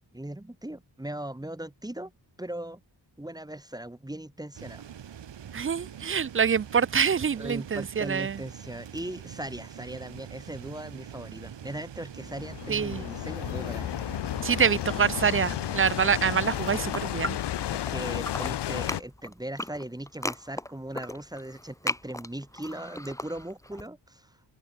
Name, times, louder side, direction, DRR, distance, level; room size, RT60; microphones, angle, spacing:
voice 1, 0.1-2.1 2.4-2.8 3.2-4.8 7.3-13.9 17.7-24.4, right 1 dB, 10° right, 2.1 m, -39 dB
sound 1, 4.5-17.0, right 9 dB, 80° right, 2.1 m, -44 dB
voice 2, 5.5-8.4 12.7-13.0 14.4-17.4, right 6 dB, 30° right, 0.4 m, -25 dB
sound 2, 12.2-19.0, left 12 dB, 70° left, 0.6 m, -32 dB
sound 3, 16.4-17.9 18.2-23.8, left 1 dB, 5° left, 2.8 m, -36 dB
open air
wide cardioid pair, 90°, 43 cm